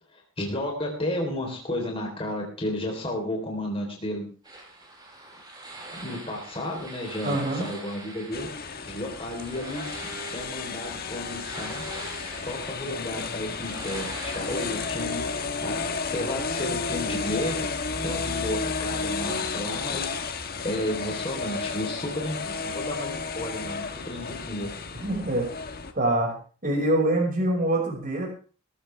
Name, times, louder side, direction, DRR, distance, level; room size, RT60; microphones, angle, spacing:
voice 1, 0.1-4.3 5.9-9.8 10.3-11.8 12.5-15.7 16.1-17.7 18.0-24.7, left 1 dB, 25° left, 0 dB, 3.8 m, -33 dB
sound 1, 4.4-15.4, right 2 dB, 20° right, 5.0 m, -43 dB
voice 2, 7.2-7.7 24.9-25.5 25.9-26.3 26.6-28.3, right 1 dB, 40° right, -2 dB, 5.7 m, -24 dB
sound 2, 8.3-25.9, left 4 dB, 45° left, 1.4 m, -32 dB
20.5 x 14.0 x 3.4 m, 0.38 s
head